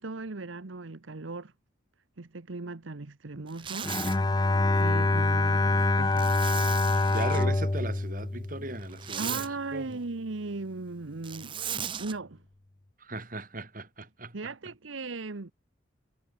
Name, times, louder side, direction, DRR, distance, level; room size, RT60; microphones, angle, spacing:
voice 1, 0.0-1.5 2.2-3.9 4.7-6.4 9.2-11.6 12.0-12.4 14.3-15.5, right 3 dB, 80° right, 1.0 m, -37 dB
Zipper (clothing), 3.5-4.2 6.2-7.5 8.8-9.5 11.2-12.1, right 8 dB, 25° right, 0.7 m, -36 dB
Bowed string instrument, 3.8-9.2, left 2 dB, 20° left, 0.5 m, -26 dB
voice 2, 7.1-9.4 9.7-10.0 13.0-14.3, right 2 dB, 45° right, 3.5 m, -37 dB
head